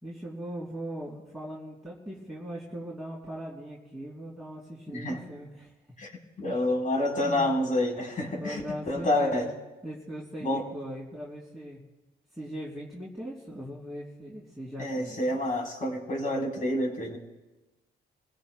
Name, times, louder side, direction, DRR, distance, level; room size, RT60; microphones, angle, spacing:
voice 1, 0.0-5.7 7.2-7.5 8.4-9.5 9.8-11.8 12.3-15.2, equal, ahead, -7 dB, 3.4 m, -39 dB
voice 2, 4.9-5.2 6.0-6.1 6.4-9.5 10.4-10.6 14.8-17.2, left 1 dB, 40° left, 0 dB, 4.0 m, -28 dB
28.5 x 16.5 x 2.2 m, 1.1 s
cardioid pair, 90°, 20 cm